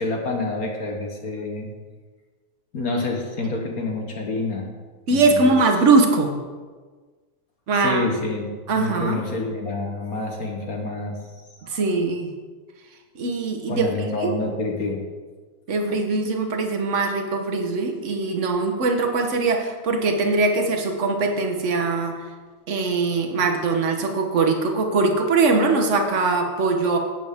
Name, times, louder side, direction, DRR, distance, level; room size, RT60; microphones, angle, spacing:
voice 1, 0.0-1.7 2.7-4.7 5.1-5.5 7.7-8.5 8.7-11.2 11.6-11.8 13.7-15.0, left 3 dB, 50° left, 1 dB, 1.4 m, -27 dB
voice 2, 5.1-6.3 7.7-8.1 8.7-9.2 11.7-12.3 13.2-13.9 14.2-14.3 15.7-22.2 22.7-27.0, right 3 dB, 45° right, 4 dB, 1.2 m, -21 dB
12.0 x 9.2 x 3.6 m, 1.4 s
omnidirectional pair, 2.3 m